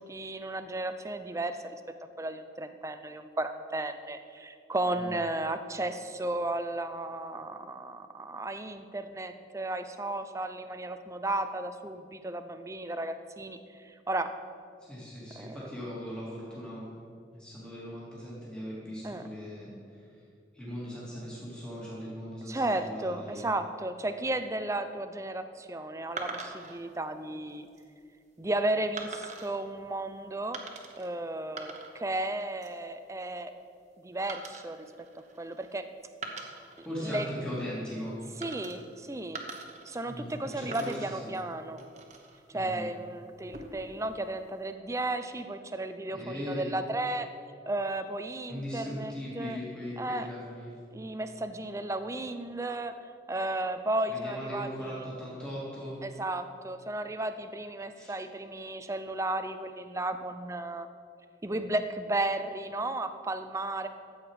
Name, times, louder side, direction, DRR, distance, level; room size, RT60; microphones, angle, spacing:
voice 1, 0.0-1.8 2.2-14.3 15.4-15.6 19.0-19.2 22.5-27.7 28.4-30.6 31.0-33.5 34.0-34.9 35.4-35.8 36.8-37.3 38.4-39.4 39.9-41.8 42.5-47.3 47.7-49.6 50.0-50.3 50.9-52.9 53.3-55.0 56.0-60.9 61.4-63.9, right 2 dB, 15° right, 9 dB, 0.5 m, -34 dB
voice 2, 14.8-16.8 17.3-20.2 20.5-23.5 36.8-38.2 40.0-41.3 42.5-42.9 46.1-46.7 48.5-50.7 54.1-56.0 57.9-58.1, equal, 5° left, -8 dB, 2.7 m, -39 dB
sound 1, 26.2-26.8 27.5-27.8 29.0-29.6 30.5-31.1 31.4-32.1 32.4-32.8 34.3-35.7 36.1-37.4 38.4-39.0 39.3-40.4 40.7-42.4 43.3-43.9, right 3 dB, 40° right, 1.1 m, -43 dB
13.5 x 8.1 x 4.9 m, 2.3 s
head